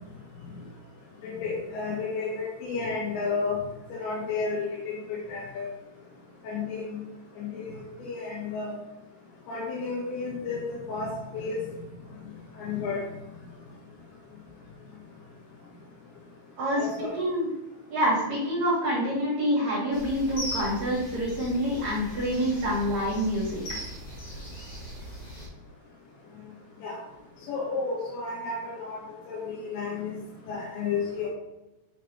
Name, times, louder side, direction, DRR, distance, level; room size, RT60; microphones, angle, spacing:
voice 1, 1.2-3.6 3.9-4.7 5.1-5.6 6.4-7.0 7.4-8.7 9.5-10.6 10.9-11.6 12.6-13.0 16.8-17.1 26.8-27.0 27.5-29.0 29.3-30.1 30.5-31.3, left 4 dB, 70° left, -5 dB, 3.3 m, -32 dB
voice 2, 17.1-17.5 17.9-23.6, equal, 45° right, -7 dB, 2.8 m, -26 dB
sound 1, 19.9-25.5, equal, 50° left, 3.0 m, -39 dB
9.8 x 3.8 x 4.3 m, 0.96 s
omnidirectional pair, 5.8 m